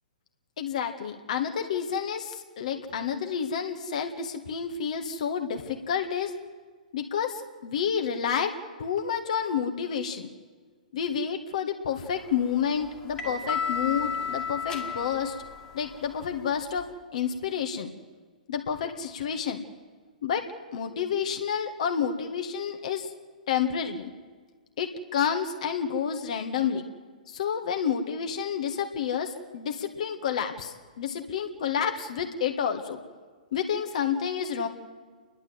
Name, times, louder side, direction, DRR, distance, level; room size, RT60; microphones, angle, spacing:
voice 1, 0.6-6.4 6.9-10.3 10.9-15.4 15.7-17.9 18.5-19.6 20.2-23.1 23.5-24.1 24.8-26.8 27.3-33.0 33.5-34.7, left 7 dB, 55° left, 5 dB, 1.8 m, -29 dB
sound 1, 12.1-16.9, left 6 dB, 20° left, 2.1 m, -34 dB
29.5 x 11.5 x 7.9 m, 1.5 s
figure-of-eight pair, 120°, 4 cm